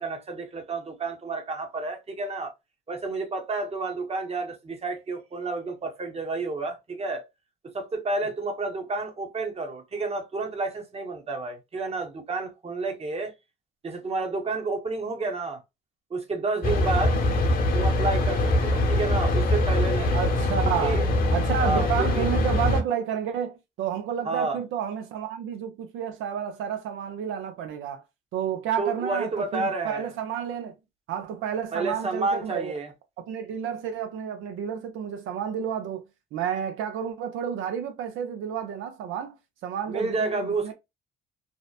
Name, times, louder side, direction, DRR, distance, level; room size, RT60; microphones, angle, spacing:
voice 1, 0.0-2.5 2.9-7.2 7.6-13.3 13.8-15.6 16.1-17.2 17.7-20.2 20.8-21.0 21.6-22.3 24.2-24.6 28.8-30.1 31.7-32.9 39.9-40.7, right 3 dB, 30° right, 0.8 m, -30 dB
sound 1, 16.6-22.8, left 1 dB, 50° left, 0.8 m, -23 dB
voice 2, 20.1-28.0 28.3-30.7 31.1-32.7 33.3-36.0 36.3-39.4 39.6-40.7, right 8 dB, 85° right, 0.5 m, -31 dB
2.8 x 2.1 x 2.3 m
cardioid pair, 90°, 20 cm